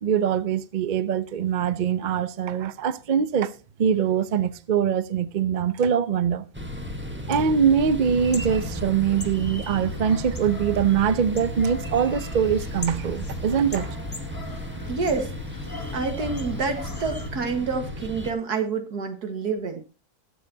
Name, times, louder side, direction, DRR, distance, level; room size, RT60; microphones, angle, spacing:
voice 1, 0.0-3.5 3.8-6.4 7.3-13.9, right 7 dB, 55° right, 0.5 m, -23 dB
sound 1, 6.5-18.3, equal, 10° right, 1.2 m, -35 dB
sound 2, 8.2-17.3, left 2 dB, 15° left, 0.9 m, -37 dB
voice 2, 14.9-15.3 15.9-19.8, right 4 dB, 80° right, 2.2 m, -28 dB
20.5 x 7.4 x 2.8 m
omnidirectional pair, 1.7 m